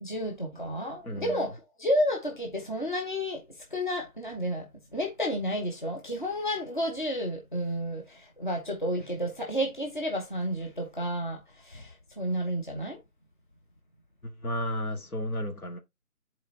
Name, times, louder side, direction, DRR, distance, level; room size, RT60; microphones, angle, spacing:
voice 1, 0.0-3.4 3.7-4.7 4.9-13.0, equal, 35° left, 1.0 m, -31 dB
voice 2, 1.0-1.5 14.2-15.8, equal, 80° left, 2.0 m, -33 dB
10.0 x 4.3 x 2.7 m
figure-of-eight pair, 180°, 43 cm